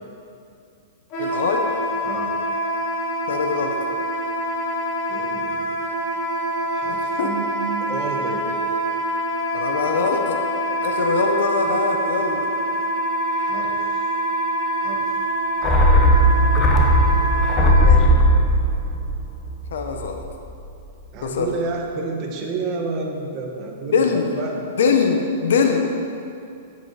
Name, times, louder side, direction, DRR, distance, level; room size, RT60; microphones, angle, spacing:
Wind instrument woodwind instrument, 1.1-17.9, right 1 dB, 35° left, 2.5 m, -25 dB
voice 1, 1.2-1.7 3.3-3.7 6.9-7.3 9.5-10.4 10.8-12.5 19.7-20.2 21.2-21.5 23.9-24.3 24.8-25.8, left 5 dB, 80° left, 3 dB, 1.0 m, -22 dB
voice 2, 5.1-5.7 6.7-8.4 13.3-14.0 14.8-15.3 15.6-15.8 16.1-16.7 17.8-18.2 21.1-24.6, right 4 dB, 35° right, 0 dB, 1.5 m, -31 dB
sound 1, 15.6-20.2 20.5-20.6, equal, 20° left, 1.1 m, -17 dB
9.2 x 8.1 x 4.9 m, 2.6 s
hypercardioid pair, 150°, 0 cm